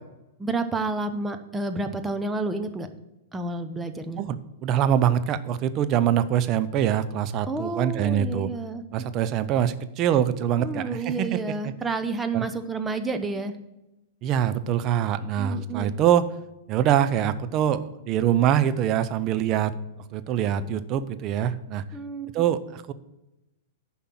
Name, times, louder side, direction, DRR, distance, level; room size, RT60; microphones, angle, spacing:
voice 1, 0.4-2.9 3.3-4.2 7.5-9.1 10.6-13.5 15.4-15.9 21.9-22.5, right 3 dB, 10° right, 8 dB, 1.0 m, -30 dB
voice 2, 4.6-8.5 8.9-11.7 12.3-12.5 14.2-16.3 16.7-17.8 18.1-19.7 20.1-21.8 22.3-22.9, right 10 dB, 35° right, 12 dB, 0.7 m, -24 dB
10.5 x 5.5 x 7.6 m, 0.95 s
hypercardioid pair, 110°, 0 cm